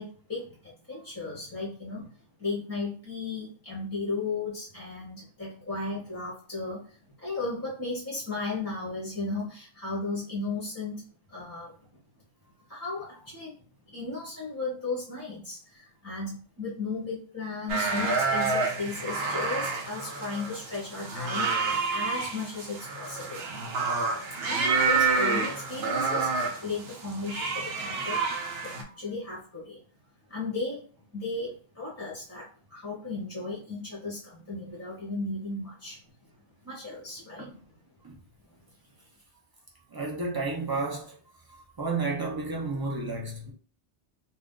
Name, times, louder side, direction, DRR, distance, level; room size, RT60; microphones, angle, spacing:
voice 1, 0.0-2.1 2.4-11.0 11.3-11.7 12.7-13.5 13.9-21.6 21.9-23.8 24.4-28.2 28.7-29.8 30.3-30.8 31.1-36.0 36.6-37.5, left 3 dB, 15° left, 0.8 m, -35 dB
sound 1, 17.7-28.8, right 4 dB, 65° right, 0.9 m, -28 dB
voice 2, 39.9-41.2 41.8-43.5, right 3 dB, 40° right, 0.3 m, -31 dB
2.6 x 2.2 x 3.6 m
omnidirectional pair, 1.2 m